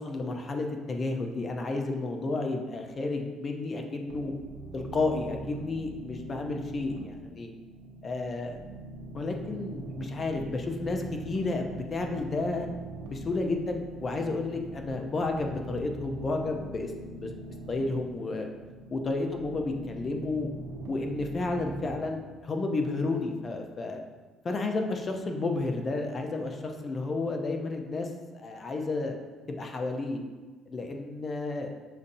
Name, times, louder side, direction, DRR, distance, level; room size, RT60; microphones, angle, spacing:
voice 1, 0.0-4.3 4.7-7.5 8.0-8.6 9.1-12.7 13.1-18.5 18.9-20.5 20.9-24.0 24.4-29.2 29.5-30.2 30.7-31.7, left 3 dB, 35° left, 3 dB, 0.5 m, -32 dB
sound 1, 4.1-22.0, right 2 dB, 85° right, 0.7 m, -42 dB
6.8 x 2.7 x 2.6 m, 1.3 s
cardioid pair, 90°, 0 cm